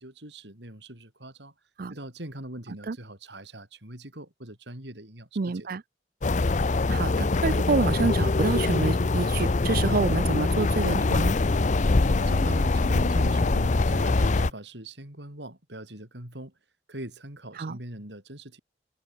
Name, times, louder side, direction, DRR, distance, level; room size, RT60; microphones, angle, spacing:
voice 1, 0.0-1.5 1.9-5.7 11.9-16.5 16.9-18.6, right 1 dB, 70° right, 6.4 m, -41 dB
voice 2, 5.4-5.8 6.9-11.4 17.6-17.8, right 4 dB, 55° right, 0.5 m, -28 dB
sound 1, 6.2-14.5, left 3 dB, 40° left, 0.6 m, -23 dB
head